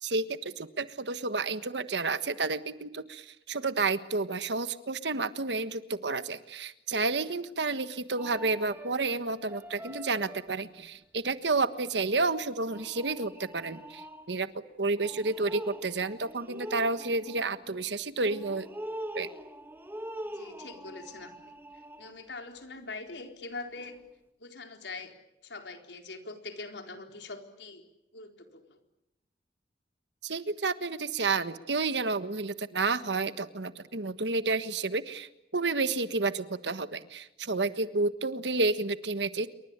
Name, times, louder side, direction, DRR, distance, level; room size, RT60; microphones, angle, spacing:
voice 1, 0.0-18.7 19.1-19.3 30.2-39.5, right 3 dB, 85° right, 12 dB, 1.4 m, -30 dB
sound 1, 8.2-10.8 12.1-12.3 12.7-14.5 15.0-22.3 23.7-24.0, right 1 dB, 10° right, 1.7 m, -44 dB
voice 2, 20.2-24.0 24.4-25.2 25.4-27.8 28.1-28.8 37.7-37.8, left 3 dB, 90° left, 5 dB, 4.1 m, -43 dB
28.0 x 24.0 x 8.9 m, 0.87 s
head